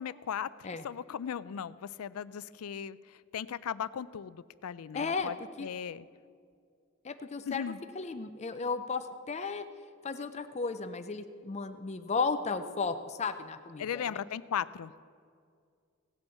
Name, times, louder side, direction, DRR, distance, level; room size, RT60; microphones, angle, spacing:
voice 1, 0.0-3.0 3.3-5.3 5.6-6.1 7.5-7.8 13.8-14.9, left 8 dB, 85° left, 18 dB, 0.4 m, -37 dB
voice 2, 4.9-5.3 5.6-5.7 7.0-7.6 7.9-9.7 10.0-14.2, left 4 dB, 30° left, 10 dB, 0.5 m, -34 dB
17.0 x 8.0 x 5.6 m, 2.2 s
head